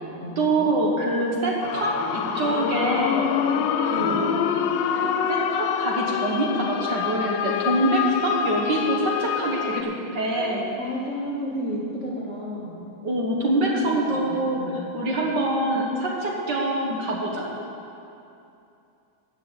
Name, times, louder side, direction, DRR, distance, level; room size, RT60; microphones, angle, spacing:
voice 1, 0.4-4.4 5.0-10.7 13.0-17.5, right 1 dB, 60° right, -2 dB, 1.9 m, -25 dB
sound 1, 1.6-9.8, left 8 dB, 75° left, 1.1 m, -26 dB
voice 2, 3.9-4.2 10.3-12.8 13.5-14.8, equal, 35° left, -5 dB, 2.2 m, -33 dB
13.5 x 5.7 x 8.1 m, 2.7 s
omnidirectional pair, 2.2 m